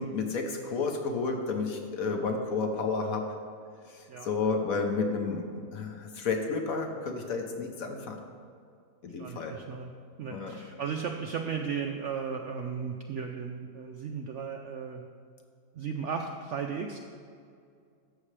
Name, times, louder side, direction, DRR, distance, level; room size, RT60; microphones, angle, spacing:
voice 1, 0.0-3.3 3.9-8.2 9.0-9.6 10.3-10.6, left 4 dB, 60° left, 3 dB, 1.3 m, -31 dB
voice 2, 9.2-9.9 10.2-15.1 15.7-17.0, right 6 dB, 70° right, 3 dB, 0.7 m, -35 dB
13.0 x 7.2 x 3.3 m, 2.3 s
omnidirectional pair, 1.8 m